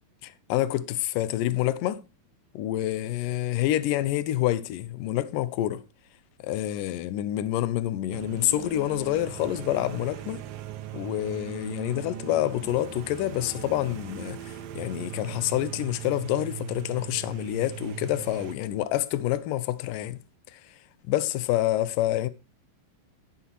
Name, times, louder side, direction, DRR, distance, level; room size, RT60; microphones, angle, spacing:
voice 1, 0.2-2.0 2.5-5.8 6.4-10.4 10.9-20.2 20.5-20.8 21.1-22.3, left 14 dB, 80° left, 2.3 m, -27 dB
sound 1, 8.1-18.6, right 11 dB, 90° right, 2.7 m, -39 dB
11.0 x 9.8 x 3.0 m
omnidirectional pair, 4.0 m